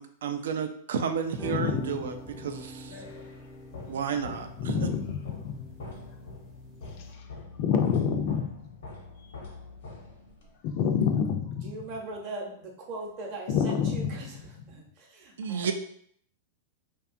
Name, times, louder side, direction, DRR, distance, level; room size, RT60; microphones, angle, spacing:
voice 1, 0.0-3.0 3.9-4.8 15.4-15.7, right 7 dB, 80° right, 7 dB, 0.3 m, -32 dB
sound 1, 1.1-7.1, right 1 dB, 10° right, 0.5 m, -45 dB
voice 2, 1.4-1.8 4.6-5.7 7.1-7.2 7.6-8.7 9.2-9.3 10.6-11.7 13.5-14.3, left 7 dB, 45° left, 4 dB, 0.4 m, -28 dB
sound 2, 2.5-10.6, left 3 dB, 85° left, 0.8 m, -45 dB
voice 3, 11.6-14.4 14.7-15.7, right 2 dB, 40° right, 0 dB, 0.7 m, -40 dB
2.7 x 2.3 x 2.5 m, 0.64 s
hypercardioid pair, 140°, 0 cm